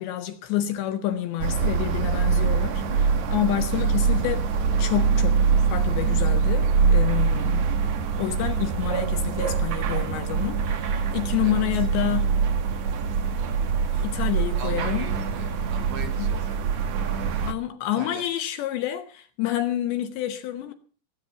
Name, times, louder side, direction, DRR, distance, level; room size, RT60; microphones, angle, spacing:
voice 1, 0.0-4.4 4.8-7.7 8.2-12.3 13.4-13.5 13.9-15.1 16.2-16.3 17.5-20.7, left 12 dB, 75° left, 2.9 m, -28 dB
sound 1, 1.4-17.5, right 5 dB, 80° right, 1.7 m, -24 dB
voice 2, 3.7-4.1 11.4-11.6 14.6-17.4 18.0-18.3, right 5 dB, 65° right, 2.9 m, -40 dB
18.5 x 9.1 x 6.9 m
omnidirectional pair, 5.8 m